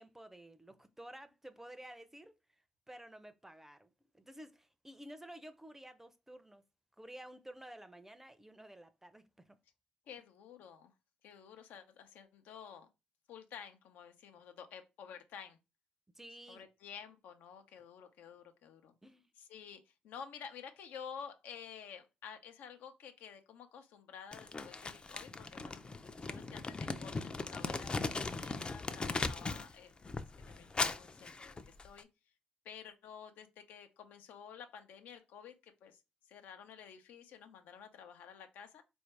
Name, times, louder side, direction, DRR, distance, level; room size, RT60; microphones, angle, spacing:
voice 1, 0.0-2.4 2.9-6.7 7.0-9.6 16.1-16.6 19.0-19.3 26.9-27.2, right 1 dB, 10° right, 0.6 m, -52 dB
voice 2, 10.1-10.9 11.2-12.9 13.3-15.6 16.5-18.9 19.4-25.8 26.2-30.1 30.4-32.1 32.6-36.0 36.3-38.8, left 7 dB, 75° left, 0.7 m, -51 dB
Crumpling crinkling, 24.3-29.7 30.0-32.0, left 3 dB, 30° left, 0.6 m, -39 dB
4.4 x 2.7 x 3.3 m
hypercardioid pair, 45°, 3 cm